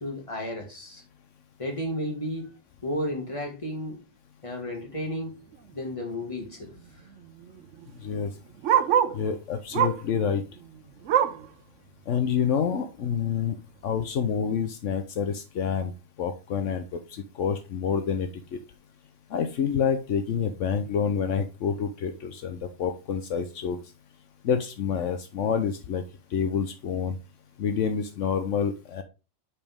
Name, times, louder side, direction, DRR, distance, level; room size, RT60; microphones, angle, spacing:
voice 1, 0.0-1.0 1.6-2.5 2.8-4.0 4.4-5.3 5.7-6.7, left 1 dB, 25° left, 1 dB, 2.0 m, -32 dB
Bark, 5.5-5.8 6.1-6.2 6.4-9.3 9.7-10.1 10.5-11.5 12.0-12.1 12.5-12.6 13.2-13.3, right 9 dB, 80° right, 1.0 m, -26 dB
voice 2, 9.1-10.4 12.1-13.6 13.8-15.9 16.2-18.6 19.3-23.8 24.4-26.0 26.3-27.2 27.6-29.0, left 7 dB, 75° left, 8 dB, 1.1 m, -28 dB
7.1 x 5.3 x 3.6 m, 0.30 s
omnidirectional pair, 1.3 m